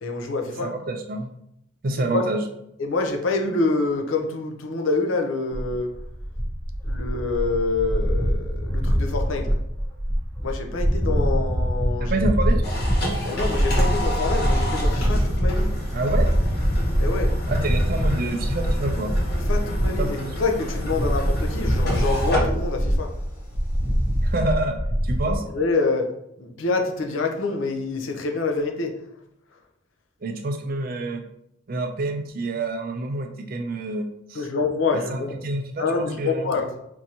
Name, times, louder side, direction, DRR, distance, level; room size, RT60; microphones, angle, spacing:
voice 1, 0.0-0.7 2.1-2.2 2.8-5.9 6.8-9.6 10.4-12.1 13.2-15.7 17.0-17.3 19.5-23.1 25.5-26.1 26.4-28.9 34.3-35.3 35.8-36.7, left 3 dB, 70° left, 4 dB, 0.5 m, -26 dB
voice 2, 0.6-1.3 1.8-2.4 12.0-12.7 15.9-16.3 17.5-19.1 20.0-20.3 24.2-25.4 30.2-31.2 31.7-34.5 34.9-36.5, right 2 dB, 45° right, 5 dB, 0.4 m, -27 dB
sound 1, 5.5-25.4, equal, 10° left, 0.5 m, -24 dB
sound 2, 12.6-24.3, equal, 50° left, 1.1 m, -31 dB
4.6 x 2.6 x 2.8 m, 0.80 s
head